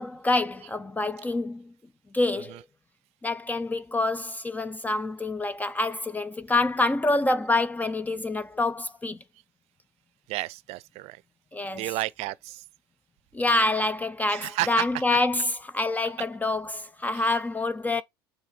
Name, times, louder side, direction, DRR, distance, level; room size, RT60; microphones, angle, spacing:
voice 1, 0.0-1.7 2.1-2.6 3.2-9.2 11.5-12.0 13.3-18.0, left 2 dB, 15° left, 0.5 m, -27 dB
voice 2, 10.3-11.2 11.7-12.6 14.3-14.9 17.1-17.4, right 19 dB, 60° right, 0.5 m, -32 dB
7.0 x 3.2 x 5.1 m
hypercardioid pair, 75°, 12 cm